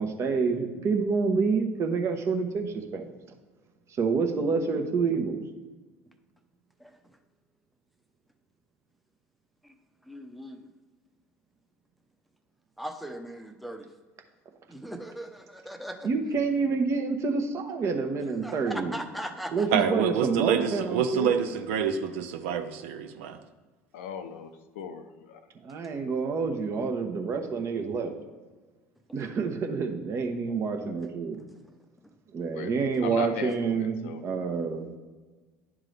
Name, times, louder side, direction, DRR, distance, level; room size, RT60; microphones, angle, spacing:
voice 1, 0.0-3.1 4.0-5.4 16.0-19.0 19.5-21.4 25.6-28.1 29.1-31.4 32.3-34.9, right 5 dB, 40° right, 5 dB, 0.9 m, -28 dB
voice 2, 6.8-7.1 9.6-9.7 10.1-10.7 12.8-13.9 14.7-16.1 18.4-19.7 31.6-31.7 32.0-32.1, equal, ahead, 5 dB, 0.7 m, -39 dB
voice 3, 19.7-23.4, right 7 dB, 70° right, 7 dB, 0.5 m, -27 dB
voice 4, 23.9-25.4 32.6-32.7 33.0-34.2, left 7 dB, 70° left, 9 dB, 0.5 m, -37 dB
10.5 x 3.7 x 3.2 m, 1.3 s
figure-of-eight pair, 65°, 7 cm